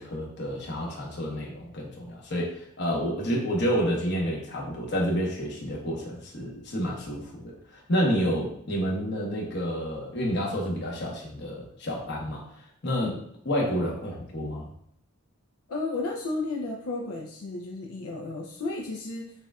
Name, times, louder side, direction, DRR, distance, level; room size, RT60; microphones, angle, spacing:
voice 1, 0.0-12.4 12.8-13.1 13.4-14.7, equal, 55° left, -2 dB, 1.1 m, -29 dB
voice 2, 15.7-19.3, left 3 dB, 90° left, 0 dB, 0.5 m, -33 dB
6.6 x 2.4 x 2.3 m, 0.66 s
head